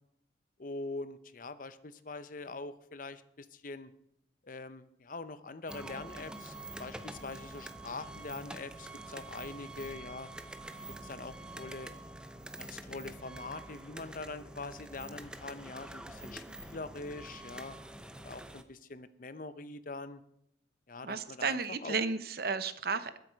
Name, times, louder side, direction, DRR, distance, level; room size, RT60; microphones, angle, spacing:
voice 1, 0.6-3.9 4.4-10.3 11.0-11.9 12.6-17.8 18.2-20.2 20.9-22.0, left 3 dB, 45° left, 13 dB, 0.7 m, -43 dB
sound 1, 5.7-18.6, right 1 dB, 5° right, 0.7 m, -46 dB
voice 2, 21.0-23.2, right 4 dB, 55° right, 12 dB, 0.8 m, -33 dB
20.5 x 7.8 x 5.2 m, 0.75 s
head